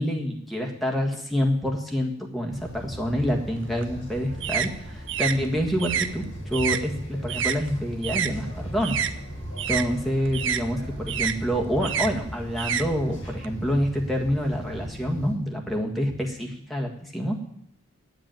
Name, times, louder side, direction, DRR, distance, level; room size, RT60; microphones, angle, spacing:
voice 1, 0.0-9.0 9.7-17.4, equal, ahead, 0 dB, 1.6 m, -27 dB
sound 1, 2.5-15.3, equal, 65° left, 3.4 m, -38 dB
sound 2, 3.6-8.3 8.6-13.5, right 8 dB, 60° right, 0.6 m, -30 dB
8.5 x 8.0 x 8.9 m, 0.69 s
head